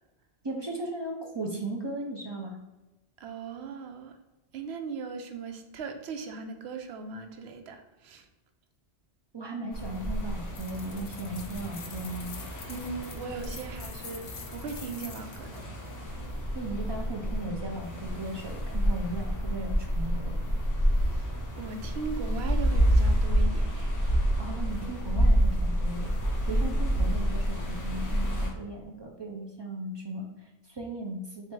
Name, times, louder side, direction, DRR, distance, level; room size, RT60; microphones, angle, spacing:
voice 1, 0.4-2.6 9.3-12.4 16.5-20.4 24.4-31.5, right 2 dB, 40° right, 0 dB, 0.3 m, -37 dB
voice 2, 3.2-4.1 4.5-8.2 12.7-14.2 14.5-15.6 21.0-21.3 21.6-23.9 26.5-26.7, right 4 dB, 80° right, 6 dB, 0.8 m, -38 dB
sound 1, 9.7-28.5, equal, 20° left, 0.8 m, -28 dB
sound 2, 10.6-15.6, left 5 dB, 50° left, 0.4 m, -46 dB
3.3 x 2.9 x 4.5 m, 1.1 s
omnidirectional pair, 1.1 m